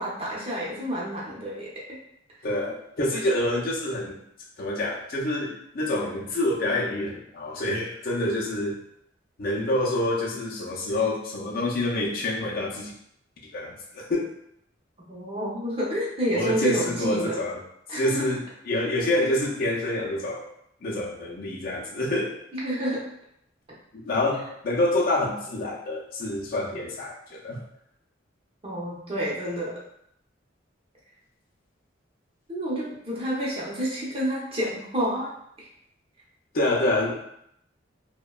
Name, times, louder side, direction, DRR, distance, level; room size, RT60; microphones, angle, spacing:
voice 1, 0.0-1.7 15.1-17.4 17.9-18.2 22.5-23.0 28.6-29.7 32.5-35.3 35.6-35.7, equal, 30° right, -5 dB, 0.7 m, -29 dB
voice 2, 2.4-4.2 4.6-8.8 9.4-12.9 13.5-14.3 16.3-17.6 17.9-20.5 20.8-22.4 23.9-27.6 36.5-37.2, left 1 dB, 50° left, -3 dB, 0.5 m, -27 dB
2.7 x 2.1 x 2.3 m, 0.73 s
head